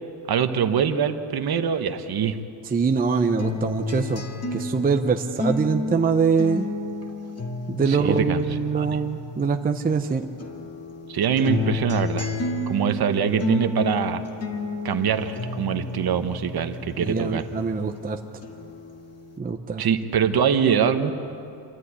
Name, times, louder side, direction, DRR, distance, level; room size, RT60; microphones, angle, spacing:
voice 1, 0.3-2.4 7.9-8.4 8.7-9.0 11.1-12.3 12.7-14.2 14.8-17.5 19.8-21.1, right 7 dB, 50° right, 9 dB, 1.2 m, -23 dB
voice 2, 2.7-4.2 4.5-6.7 7.7-10.2 17.0-18.2 19.4-19.8, right 5 dB, 20° right, 5 dB, 0.6 m, -23 dB
sound 1, 3.4-10.0 10.4-18.0 18.4-19.4, left 3 dB, 30° left, 1.9 m, -31 dB
27.5 x 13.0 x 9.6 m, 2.6 s
cardioid pair, 165°, 49 cm